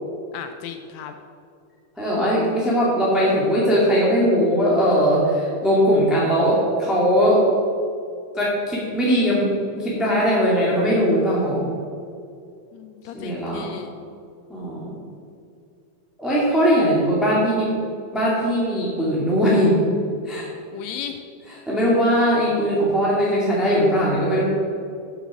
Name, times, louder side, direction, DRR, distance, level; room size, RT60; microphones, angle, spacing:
voice 1, 0.3-1.1 12.7-13.9 20.7-21.2, left 8 dB, 85° left, 7 dB, 1.6 m, -35 dB
voice 2, 2.0-7.4 8.3-11.8 13.1-13.8 14.5-15.0 16.2-17.7 18.1-19.8 20.2-20.4 21.7-24.4, equal, ahead, -6 dB, 1.1 m, -20 dB
8.5 x 6.7 x 6.2 m, 2.4 s
omnidirectional pair, 3.7 m